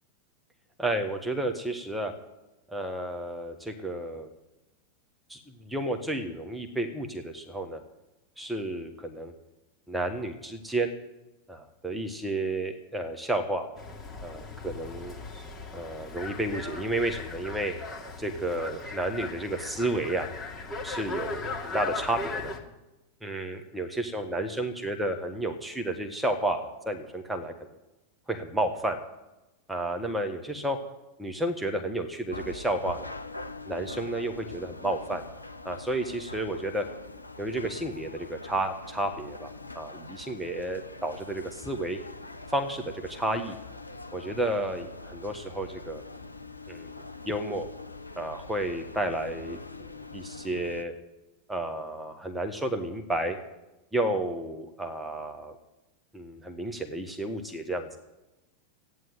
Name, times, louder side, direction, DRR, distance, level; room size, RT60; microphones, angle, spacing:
voice 1, 0.8-2.1 2.7-4.3 5.3-7.8 8.4-9.3 9.9-10.9 11.5-13.7 14.2-15.2 15.7-17.7 18.2-20.3 20.8-22.5 23.2-27.5 28.3-29.0 29.7-30.8 31.2-33.1 33.7-35.2 35.6-36.9 37.4-42.0 42.5-43.6 44.1-46.0 46.7-46.9 47.2-47.7 48.1-50.9 51.5-53.4 53.9-55.6 56.1-57.9, right 1 dB, 5° right, 5 dB, 1.3 m, -31 dB
sound 1, 13.7-22.6, left 3 dB, 15° left, 2.5 m, -38 dB
sound 2, 32.3-50.8, left 3 dB, 85° left, 0.7 m, -43 dB
14.0 x 9.4 x 9.0 m, 1.0 s
figure-of-eight pair, 90°, 0 cm